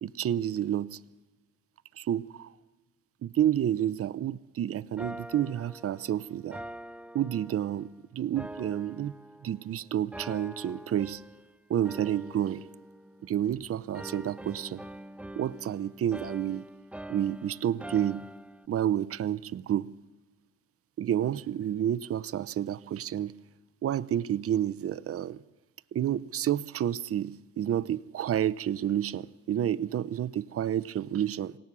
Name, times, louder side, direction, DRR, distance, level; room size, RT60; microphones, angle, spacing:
voice 1, 0.0-1.0 2.0-2.5 3.2-6.6 7.1-9.1 9.4-11.2 11.7-12.7 13.2-14.8 15.4-16.6 17.1-18.2 18.7-19.9 21.0-23.4 23.8-25.4 25.9-31.6, right 10 dB, 50° right, 0.7 m, -30 dB
sound 1, 5.0-7.9 8.4-9.7 10.1-11.5 11.8-13.6 13.9-18.7, right 1 dB, 5° right, 0.6 m, -44 dB
27.0 x 17.5 x 6.1 m
cardioid pair, 90°, 30 cm